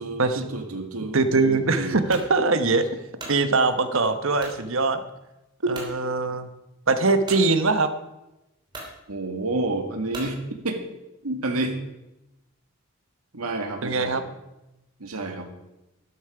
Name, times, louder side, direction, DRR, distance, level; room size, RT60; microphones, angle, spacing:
voice 1, 0.0-2.0 5.6-5.8 9.1-10.4 10.6-10.8 11.2-11.8 13.3-14.2 15.0-15.5, right 2 dB, 85° right, 4 dB, 2.0 m, -29 dB
voice 2, 1.1-2.9 3.3-5.0 5.7-6.5 6.9-7.9 13.8-14.2, right 3 dB, 65° right, 10 dB, 1.1 m, -22 dB
sound 1, 2.1-2.3 2.9-3.4 4.4-4.6 5.2-5.3 5.7-5.9 7.3-7.5 8.2-8.3 8.7-8.9 10.1-10.4, right 2 dB, 20° right, 3.2 m, -38 dB
12.5 x 12.0 x 5.0 m, 0.95 s
head